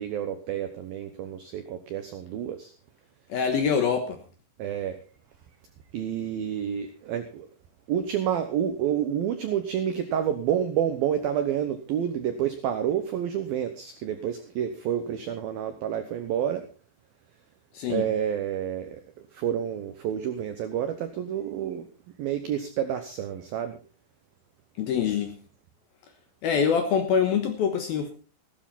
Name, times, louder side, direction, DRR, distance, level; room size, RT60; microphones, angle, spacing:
voice 1, 0.0-2.7 4.6-5.0 5.9-7.5 7.9-16.6 17.9-19.0 19.3-21.9 22.2-23.8, right 9 dB, 80° right, 8 dB, 2.1 m, -29 dB
voice 2, 3.3-4.2 17.7-18.1 24.8-25.4 26.4-28.1, left 7 dB, 70° left, 6 dB, 2.4 m, -25 dB
15.5 x 13.5 x 4.1 m, 0.36 s
omnidirectional pair, 5.7 m